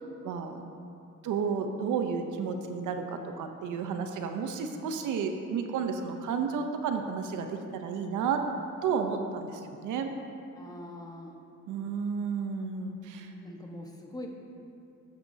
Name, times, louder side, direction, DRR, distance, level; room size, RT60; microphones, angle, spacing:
voice 1, 0.2-0.7 1.2-8.4 8.8-10.1 11.7-13.3, right 6 dB, 80° right, 5 dB, 0.8 m, -32 dB
voice 2, 10.5-11.4 13.4-14.3, left 1 dB, 10° left, 0 dB, 1.2 m, -43 dB
11.5 x 9.1 x 2.8 m, 2.5 s
cardioid pair, 90°, 30 cm